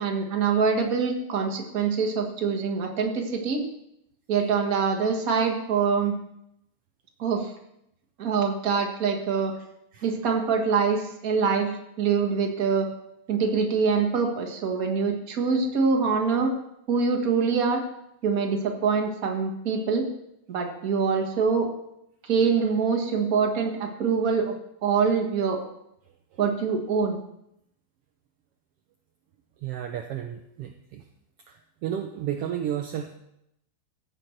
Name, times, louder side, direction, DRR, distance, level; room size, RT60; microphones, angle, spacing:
voice 1, 0.0-3.6 4.3-6.2 7.2-7.5 8.2-9.5 10.0-12.9 13.3-16.5 16.9-17.8 18.2-20.1 20.5-21.7 22.2-24.5 24.8-25.6 26.4-27.2, right 5 dB, 40° right, 2 dB, 1.5 m, -24 dB
voice 2, 29.6-31.0 31.5-33.2, right 10 dB, 75° right, 5 dB, 1.4 m, -32 dB
15.5 x 7.9 x 4.5 m, 0.79 s
omnidirectional pair, 3.4 m